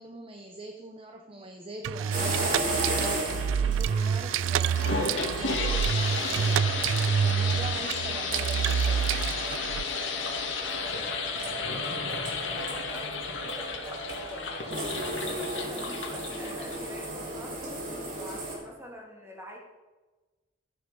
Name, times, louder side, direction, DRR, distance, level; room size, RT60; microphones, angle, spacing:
voice 1, 0.0-6.8 7.2-9.1 15.7-16.2, right 1 dB, 30° right, 4 dB, 0.9 m, -43 dB
sound 1, 1.8-9.8, right 7 dB, 75° right, 0.3 m, -28 dB
sound 2, 2.1-18.6, right 1 dB, 45° right, 3.6 m, -36 dB
sound 3, 4.5-17.0, left 5 dB, 70° left, 2.0 m, -33 dB
voice 2, 9.9-14.9 15.3-19.6, left 1 dB, 15° right, -1 dB, 2.6 m, -46 dB
13.0 x 9.7 x 5.3 m, 1.2 s
head